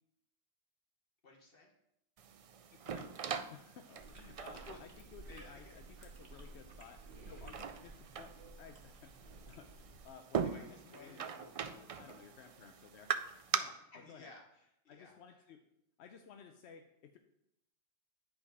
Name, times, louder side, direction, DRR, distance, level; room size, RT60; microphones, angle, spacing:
voice 1, 1.2-1.7 4.5-4.8 5.3-5.8 10.4-11.2 13.5-15.2, left 3 dB, 60° left, 0 dB, 1.7 m, -56 dB
sound 1, 2.2-13.6, right 7 dB, 60° right, 0.3 m, -42 dB
voice 2, 2.7-3.1 3.5-13.1 13.5-14.3 14.9-15.6 16.0-17.2, left 7 dB, 85° left, 6 dB, 0.9 m, -57 dB
Chewing mastication, 4.0-10.1, right 3 dB, 40° right, 1.2 m, -54 dB
10.0 x 5.2 x 4.1 m, 0.80 s
omnidirectional pair, 1.1 m